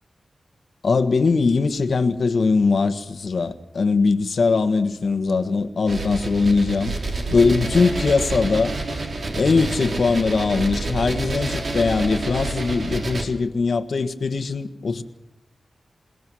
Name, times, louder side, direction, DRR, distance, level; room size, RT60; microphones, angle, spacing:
voice 1, 0.8-6.9 7.3-8.8 9.4-15.0, left 4 dB, 65° left, 1.6 m, -21 dB
sound 1, 5.9-13.2, right 2 dB, 55° right, 3.6 m, -28 dB
28.0 x 18.5 x 6.4 m
wide cardioid pair, 125°, 0 cm